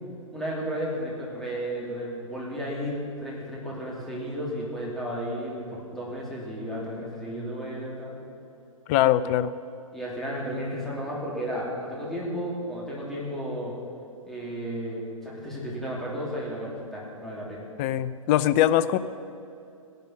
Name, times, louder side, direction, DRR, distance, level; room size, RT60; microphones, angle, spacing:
voice 1, 0.3-8.2 9.9-13.8 14.3-17.7, equal, ahead, -6 dB, 3.1 m, -33 dB
voice 2, 8.9-9.5 17.8-19.0, left 12 dB, 25° left, 15 dB, 0.4 m, -22 dB
16.5 x 11.5 x 5.8 m, 2.7 s
figure-of-eight pair, 115°, 18 cm